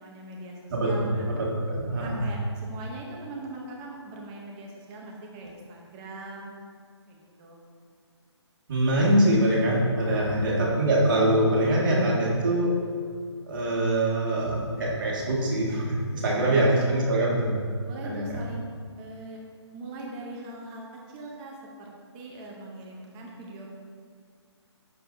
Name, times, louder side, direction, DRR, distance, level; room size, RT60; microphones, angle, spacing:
voice 1, 0.0-1.3 2.0-6.5 7.1-7.6 10.0-10.5 16.2-17.1 17.8-18.6 19.0-19.4 19.7-23.7, right 2 dB, 15° right, -1 dB, 0.7 m, -41 dB
voice 2, 0.7-2.2 8.7-12.8 13.5-17.5 18.0-18.2, right 1 dB, 45° right, -4 dB, 1.7 m, -24 dB
7.5 x 6.3 x 2.6 m, 2.1 s
hypercardioid pair, 155°, 15 cm